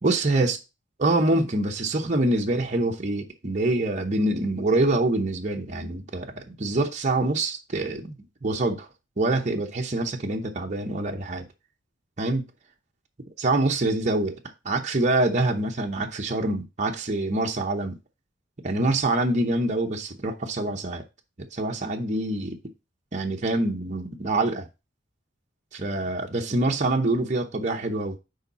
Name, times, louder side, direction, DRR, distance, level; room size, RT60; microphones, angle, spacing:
voice 1, 0.0-0.6 1.0-6.3 6.6-8.2 8.4-8.9 9.2-11.5 12.2-12.4 13.4-14.4 14.6-18.0 18.6-21.0 21.5-22.6 23.1-24.7 25.7-28.2, right 2 dB, 35° right, 0.8 m, -25 dB
6.6 x 4.5 x 4.1 m
head